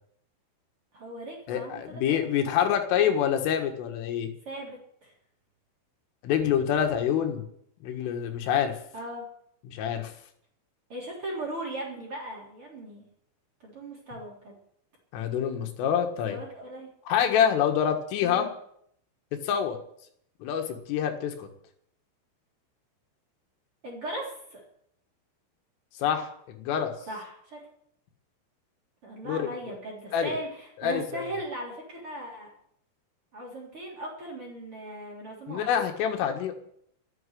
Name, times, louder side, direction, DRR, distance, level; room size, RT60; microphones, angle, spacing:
voice 1, 0.9-2.3 4.5-5.1 8.9-9.2 10.9-13.1 13.6-14.6 16.3-16.9 18.2-18.5 23.8-24.6 27.1-27.6 29.0-32.5 33.3-35.8, right 1 dB, 30° right, -1 dB, 3.8 m, -38 dB
voice 2, 1.5-4.3 6.2-7.5 7.8-8.8 9.7-10.1 15.1-16.4 17.1-18.5 19.3-19.8 20.4-21.5 26.0-26.9 29.3-29.5 30.1-30.3 30.8-31.2 35.5-36.5, left 9 dB, 80° left, 5 dB, 4.1 m, -26 dB
13.5 x 8.8 x 10.0 m, 0.70 s
omnidirectional pair, 5.8 m